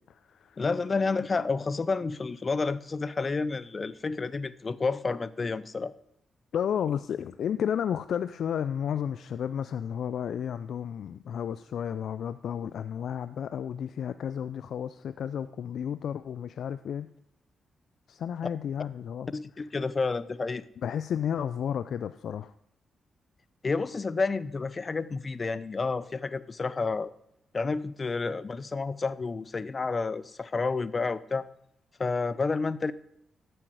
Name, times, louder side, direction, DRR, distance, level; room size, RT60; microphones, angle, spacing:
voice 1, 0.0-0.6 6.5-17.1 18.1-19.3 20.8-22.5, left 8 dB, 75° left, 13 dB, 0.4 m, -32 dB
voice 2, 0.6-5.9 19.3-20.6 23.6-27.1 27.5-31.5 32.0-32.9, left 4 dB, 40° left, 17 dB, 0.7 m, -30 dB
13.0 x 7.8 x 4.8 m, 0.77 s
supercardioid pair, 50°, 0 cm